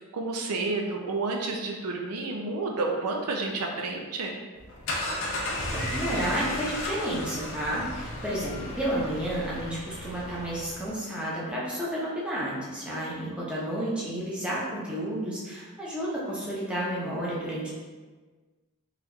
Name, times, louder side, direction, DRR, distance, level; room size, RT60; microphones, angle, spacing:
voice 1, 0.1-4.4, right 3 dB, 85° right, 1 dB, 0.5 m, -30 dB
sound 1, 4.6-10.9, left 1 dB, 60° left, 0.6 m, -34 dB
voice 2, 5.7-17.7, right 1 dB, 5° right, -7 dB, 0.7 m, -31 dB
3.9 x 2.8 x 2.3 m, 1.4 s
head